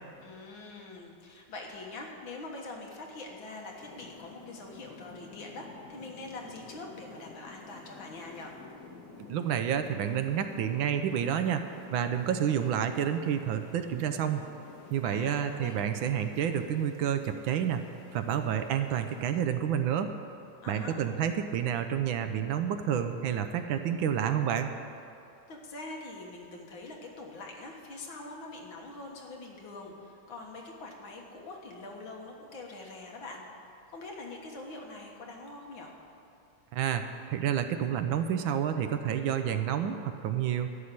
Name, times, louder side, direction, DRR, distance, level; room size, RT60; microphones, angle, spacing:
voice 1, 0.2-8.5 15.0-15.8 20.6-21.0 25.5-33.4 33.9-35.9, left 2 dB, 70° left, 0 dB, 2.2 m, -44 dB
sound 1, 3.7-19.3, left 4 dB, 50° left, 1.5 m, -51 dB
voice 2, 9.2-11.6 11.9-14.4 14.9-17.8 18.1-20.1 20.7-24.7 36.7-40.7, right 9 dB, 75° right, 8 dB, 1.4 m, -29 dB
13.0 x 5.9 x 9.5 m, 2.7 s
omnidirectional pair, 2.3 m